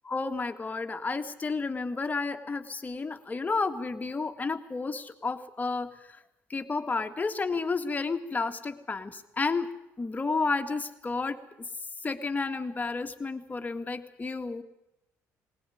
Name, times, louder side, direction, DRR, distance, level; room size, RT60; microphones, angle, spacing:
voice 1, 0.1-6.2 6.5-9.7 10.0-11.4 12.0-14.6, left 4 dB, 25° left, 7 dB, 2.0 m, -31 dB
20.0 x 19.5 x 9.3 m, 0.87 s
cardioid pair, 90°, 6 cm